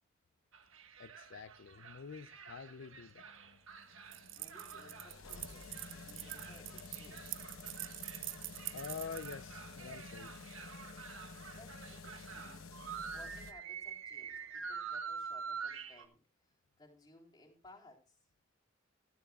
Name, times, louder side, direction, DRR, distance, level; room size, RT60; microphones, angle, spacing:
sound 1, 0.5-16.0, right 6 dB, 80° right, 1.5 m, -47 dB
voice 1, 1.0-3.3 8.7-10.3, left 6 dB, 70° left, 0.5 m, -47 dB
sound 2, 3.2-13.5, left 4 dB, 90° left, 0.9 m, -52 dB
sound 3, 4.1-10.4, right 18 dB, 65° right, 0.4 m, -46 dB
voice 2, 4.3-7.2 11.5-12.7 13.1-18.2, left 1 dB, 20° left, 3.6 m, -60 dB
15.5 x 12.5 x 2.3 m
head